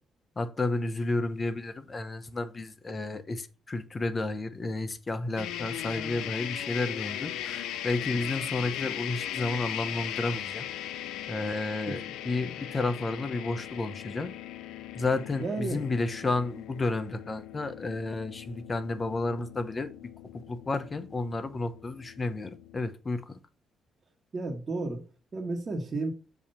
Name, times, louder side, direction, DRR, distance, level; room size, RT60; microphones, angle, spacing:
voice 1, 0.4-10.6 11.3-14.3 15.0-19.9 20.5-23.4, left 2 dB, 30° left, 0.8 m, -32 dB
sound 1, 5.4-22.9, left 11 dB, 90° left, 0.5 m, -38 dB
voice 2, 15.4-15.9 24.3-25.0 25.3-26.1, right 3 dB, 40° right, 1.4 m, -32 dB
7.0 x 2.9 x 5.4 m
cardioid pair, 90°, 0 cm